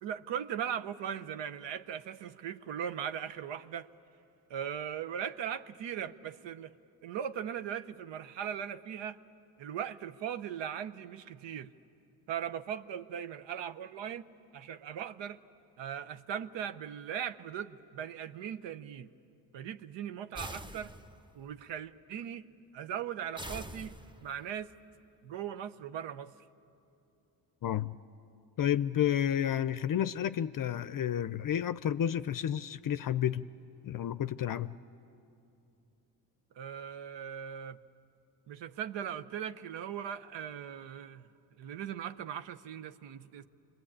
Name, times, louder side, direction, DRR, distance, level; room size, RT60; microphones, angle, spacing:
voice 1, 0.0-3.9 4.5-6.7 7.0-9.2 9.6-11.7 12.3-14.2 14.5-15.4 15.8-19.1 19.5-20.9 21.3-22.5 22.7-24.7 25.2-26.3 36.5-37.8 38.5-41.3 41.6-43.5, right 9 dB, 80° right, 11 dB, 0.8 m, -39 dB
sound 1, 20.4-21.4 23.4-24.4, equal, 10° right, 1.1 m, -44 dB
voice 2, 27.6-27.9 28.6-33.4 33.8-34.7, left 10 dB, 50° left, 14 dB, 0.5 m, -31 dB
27.0 x 21.5 x 8.7 m, 2.7 s
cardioid pair, 65°, 43 cm